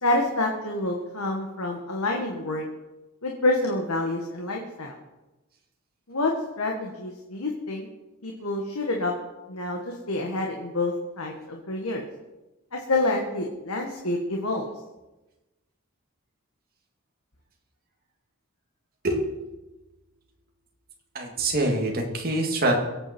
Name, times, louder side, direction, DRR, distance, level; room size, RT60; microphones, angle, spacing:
voice 1, 0.0-2.6 3.2-4.9 6.1-6.3 6.6-7.9 8.2-9.1 9.5-12.1 12.7-14.6, left 2 dB, 80° left, 1 dB, 1.9 m, -27 dB
voice 2, 21.1-22.8, right 1 dB, 45° right, 0 dB, 2.7 m, -25 dB
22.5 x 8.9 x 4.6 m, 1.0 s
head